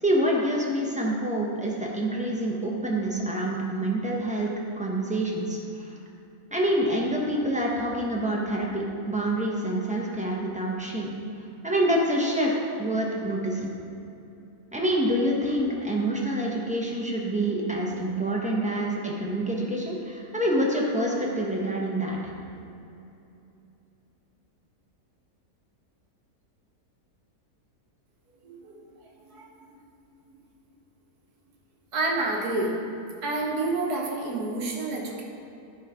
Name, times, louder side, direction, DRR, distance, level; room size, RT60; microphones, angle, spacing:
voice 1, 0.0-4.5 4.8-5.9 6.5-13.7 14.7-22.3, right 1 dB, 5° right, -3 dB, 0.7 m, -27 dB
voice 2, 28.4-28.8 29.2-29.5 30.3-30.4 31.9-32.8 33.2-35.2, right 2 dB, 70° right, -1 dB, 1.7 m, -29 dB
11.0 x 4.2 x 4.9 m, 2.7 s
omnidirectional pair, 1.7 m